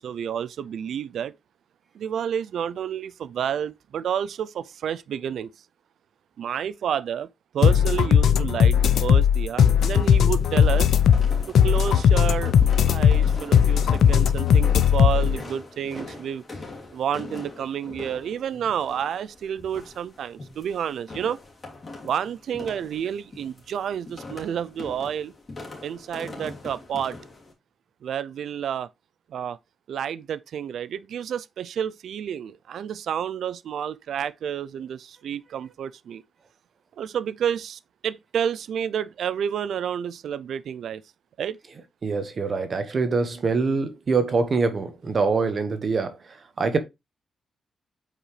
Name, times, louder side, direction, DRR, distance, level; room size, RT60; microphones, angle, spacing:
voice 1, 0.0-1.3 1.9-5.5 6.4-10.9 11.5-12.5 12.9-16.4 16.9-21.4 22.0-25.3 25.8-27.2 28.0-28.9 29.3-29.6 29.9-36.2 37.0-41.0 41.4-41.6, right 9 dB, 70° right, 0.4 m, -30 dB
sound 1, 7.6-15.4, left 8 dB, 75° left, 0.6 m, -18 dB
sound 2, 9.8-27.5, left 3 dB, 25° left, 3.0 m, -42 dB
voice 2, 42.0-46.2 46.6-46.8, right 4 dB, 40° right, 1.3 m, -24 dB
8.6 x 5.3 x 3.2 m
wide cardioid pair, 165°, 0 cm